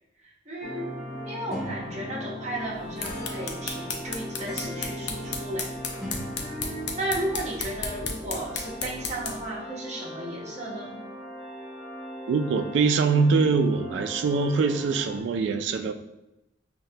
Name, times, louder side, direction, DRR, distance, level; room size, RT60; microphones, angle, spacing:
voice 1, 0.5-0.9 1.2-5.7 6.4-11.0, right 1 dB, 35° right, -4 dB, 0.9 m, -34 dB
sound 1, 0.6-15.2, left 1 dB, ahead, 0.8 m, -38 dB
sound 2, 2.7-9.5, left 4 dB, 65° left, 0.5 m, -35 dB
voice 2, 12.3-15.9, right 4 dB, 70° right, 7 dB, 0.3 m, -23 dB
5.7 x 2.2 x 2.7 m, 0.89 s
head